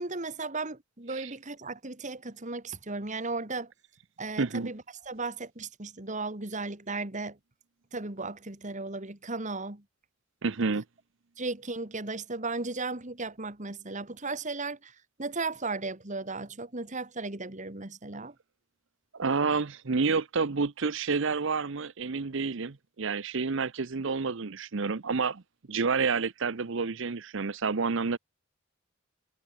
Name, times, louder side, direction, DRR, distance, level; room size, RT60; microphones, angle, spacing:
voice 1, 0.0-3.7 4.2-7.4 7.9-9.8 11.4-18.3, right 3 dB, 35° right, 2.4 m, -36 dB
voice 2, 4.4-4.7 10.4-10.8 19.1-25.4 25.7-28.2, right 4 dB, 65° right, 0.8 m, -29 dB
head